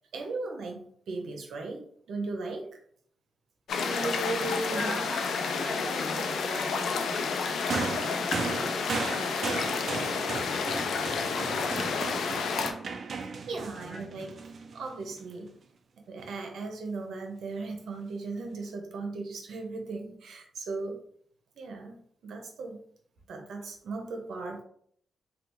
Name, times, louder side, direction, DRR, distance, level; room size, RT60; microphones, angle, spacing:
voice 1, 0.1-0.8 1.1-1.8 2.1-2.7 3.7-5.0 6.1-6.5 13.5-14.4 14.7-15.5 16.1-21.0 21.6-22.8 23.3-24.6, right 3 dB, 80° right, 3 dB, 0.7 m, -37 dB
sound 1, 3.7-12.7, left 5 dB, 80° left, 0.4 m, -30 dB
voice 2, 4.6-8.9 10.2-10.5 11.0-12.8 13.5-14.3, equal, 40° right, -5 dB, 0.9 m, -42 dB
sound 2, 7.7-15.2 16.2-16.3, right 5 dB, 55° right, 0.4 m, -36 dB
3.4 x 2.4 x 3.0 m, 0.62 s
cardioid pair, 90°, 0 cm